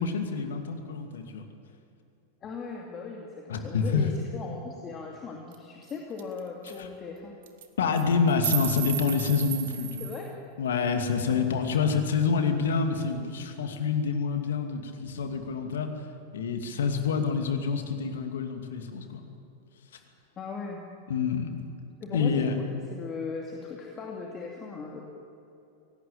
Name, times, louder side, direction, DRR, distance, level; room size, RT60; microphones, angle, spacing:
voice 1, 0.0-1.5 3.5-4.1 6.8-6.9 7.8-10.0 10.6-15.9 16.3-19.3 21.1-21.5 22.1-22.5, left 5 dB, 60° left, 6 dB, 2.5 m, -27 dB
voice 2, 2.4-7.3 10.0-10.3 20.4-20.8 22.0-25.0, left 4 dB, 25° left, 0 dB, 2.6 m, -38 dB
sound 1, 5.5-5.6 5.9-6.0 6.2-6.4 6.7-6.8 7.4-7.7 8.0-10.3, right 12 dB, 55° right, 1.7 m, -33 dB
23.5 x 18.0 x 9.0 m, 2.7 s
figure-of-eight pair, 90°, 0 cm